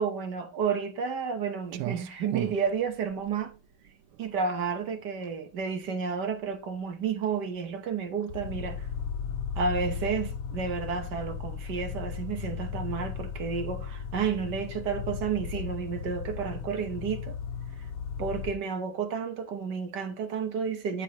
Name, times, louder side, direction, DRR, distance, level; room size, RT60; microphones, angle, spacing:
voice 1, 0.0-3.5 4.2-8.9 9.6-17.4 18.2-21.0, right 6 dB, 55° right, 1.5 m, -31 dB
Clock, 1.7-9.1, right 13 dB, 90° right, 1.6 m, -41 dB
sound 1, 8.3-18.5, left 7 dB, 70° left, 0.8 m, -36 dB
12.0 x 4.7 x 2.9 m
omnidirectional pair, 2.4 m